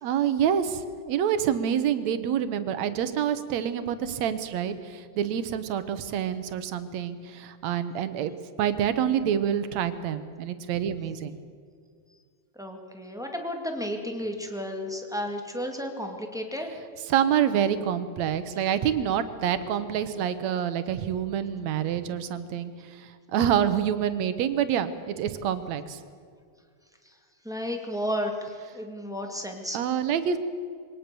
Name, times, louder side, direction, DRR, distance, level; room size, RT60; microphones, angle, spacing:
voice 1, 0.0-11.4 17.1-26.0 29.7-30.4, right 9 dB, 70° right, 12 dB, 2.2 m, -27 dB
voice 2, 12.5-16.7 27.0-27.1 27.4-29.8, equal, ahead, 3 dB, 1.6 m, -33 dB
23.0 x 18.5 x 6.9 m, 2.1 s
omnidirectional pair, 3.3 m